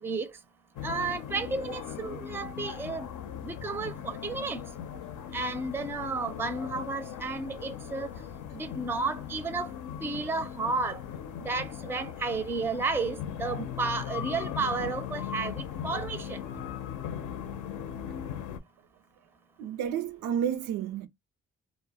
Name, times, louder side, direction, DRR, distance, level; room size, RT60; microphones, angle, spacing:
sound 1, 0.8-18.6, left 9 dB, 80° left, 0.6 m, -39 dB
voice 1, 0.8-3.1 3.4-4.6 5.3-8.1 8.5-9.7 10.0-11.0 11.4-16.4, right 3 dB, 10° right, 0.4 m, -32 dB
voice 2, 19.6-21.1, right 9 dB, 85° right, 0.5 m, -31 dB
2.1 x 2.0 x 3.4 m
cardioid pair, 90°, 30 cm